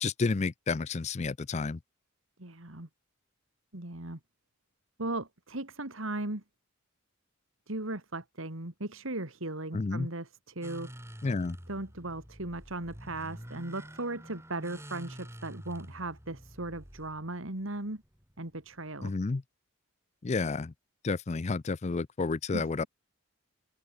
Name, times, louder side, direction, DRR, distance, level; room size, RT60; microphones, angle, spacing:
voice 1, 0.0-1.8 9.7-10.1 11.2-11.6 19.0-19.4 20.2-20.7 21.0-22.8, left 4 dB, 30° left, 0.4 m, -30 dB
voice 2, 2.4-2.9 3.7-4.2 5.0-6.4 7.7-10.9 11.7-18.0 18.4-19.1 22.5-22.9, right 2 dB, 70° right, 2.9 m, -37 dB
sound 1, 10.6-19.0, equal, 15° right, 6.0 m, -48 dB
head